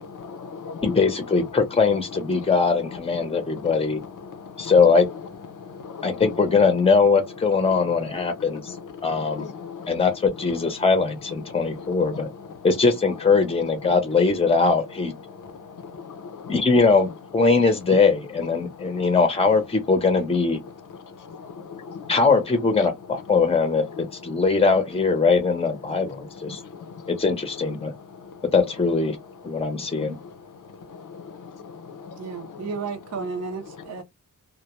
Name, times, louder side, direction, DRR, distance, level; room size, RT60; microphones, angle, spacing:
voice 1, 0.0-1.0 1.3-1.5 2.3-2.5 3.2-4.8 5.5-6.6 7.7-10.1 10.5-10.9 11.4-12.7 13.8-13.9 14.5-14.6 15.2-16.7 18.6-19.1 20.7-22.2 23.8-24.0 24.3-24.4 25.9-27.1 27.8-28.5 29.5-32.8 33.7-34.0, left 5 dB, 70° left, 0.6 m, -40 dB
voice 2, 0.8-4.0 4.6-5.1 6.0-8.7 9.0-9.5 9.9-12.3 12.6-15.1 16.5-20.6 22.1-26.6 27.1-27.9 28.5-29.2 29.4-30.2, left 4 dB, 20° left, 0.7 m, -21 dB
voice 3, 32.2-34.0, right 5 dB, 50° right, 0.6 m, -32 dB
2.2 x 2.1 x 2.9 m
wide cardioid pair, 110°, 33 cm